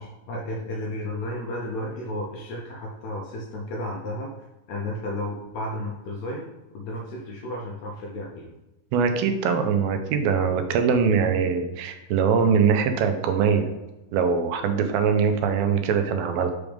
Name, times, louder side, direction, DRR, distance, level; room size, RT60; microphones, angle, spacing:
voice 1, 0.0-4.3 4.7-8.5, left 1 dB, 75° left, -2 dB, 1.7 m, -33 dB
voice 2, 8.9-13.7 14.1-16.5, right 6 dB, 90° right, 7 dB, 2.5 m, -22 dB
6.0 x 3.5 x 5.0 m, 1.0 s
omnidirectional pair, 4.1 m